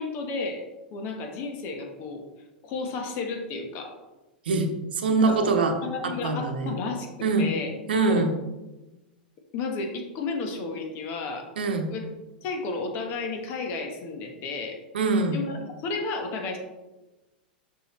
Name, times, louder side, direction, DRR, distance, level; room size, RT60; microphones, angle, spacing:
voice 1, 0.0-2.2 2.6-3.9 5.2-5.5 5.8-8.3 9.5-11.5 11.9-12.1 12.4-14.8 15.3-16.6, left 4 dB, 45° left, 4 dB, 1.3 m, -32 dB
voice 2, 4.5-5.7 6.0-6.8 7.2-7.5 7.9-8.3 11.6-11.9 14.9-15.4, right 3 dB, 80° right, 5 dB, 0.9 m, -24 dB
6.2 x 5.5 x 3.2 m, 1.1 s
hypercardioid pair, 100°, 5 cm